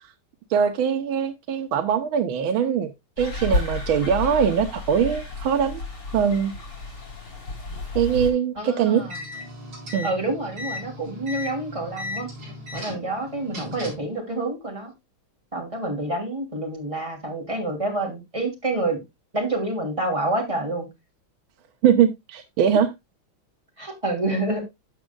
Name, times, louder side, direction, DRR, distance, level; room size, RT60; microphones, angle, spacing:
voice 1, 0.5-2.9 3.2-5.8 6.1-6.5 7.9-9.0 9.9-10.1 21.8-22.9, right 8 dB, 80° right, 1.6 m, -22 dB
sound 1, 3.2-8.3, left 2 dB, 90° left, 5.7 m, -31 dB
voice 2, 8.6-9.2 10.0-12.3 12.7-14.9 15.5-19.0 19.3-20.9 23.8-24.6, right 2 dB, 15° right, 2.9 m, -28 dB
sound 2, 9.0-14.1, left 2 dB, 60° right, 4.4 m, -36 dB
13.0 x 6.1 x 2.3 m
omnidirectional pair, 2.3 m